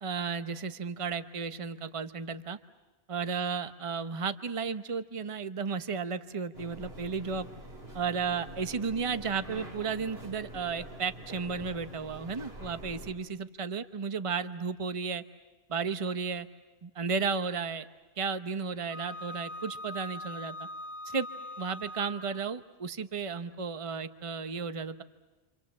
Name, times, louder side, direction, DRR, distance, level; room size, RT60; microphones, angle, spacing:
voice 1, 0.0-2.6 3.1-7.5 7.9-15.2 15.7-16.5 16.8-17.9 18.2-20.6 21.0-21.3 21.6-25.0, right 5 dB, 30° right, 10 dB, 1.0 m, -33 dB
sound 1, 6.5-13.1, right 1 dB, 65° right, 4.0 m, -46 dB
Wind instrument woodwind instrument, 18.9-22.5, left 1 dB, 45° left, 1.7 m, -42 dB
28.5 x 27.0 x 7.4 m, 1.2 s
omnidirectional pair, 1.1 m